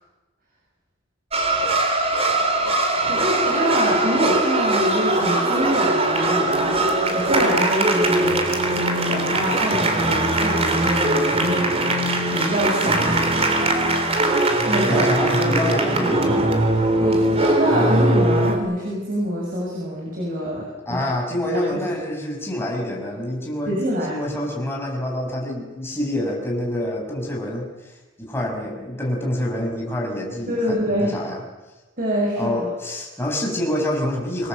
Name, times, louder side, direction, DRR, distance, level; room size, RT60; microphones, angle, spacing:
sound 1, 1.3-18.6, right 2 dB, 30° right, 3.4 m, -20 dB
voice 1, 3.1-8.4 8.7-13.4 14.2-15.1 15.4-16.4 16.7-21.0 21.4-21.8 23.7-24.3 30.5-31.1 32.0-32.7, equal, 45° right, -3 dB, 6.7 m, -26 dB
voice 2, 14.8-16.4 20.9-23.7 24.1-27.7 28.2-31.4 32.4-34.5, left 1 dB, 15° left, 0 dB, 6.4 m, -26 dB
26.5 x 21.5 x 7.9 m, 1.2 s
head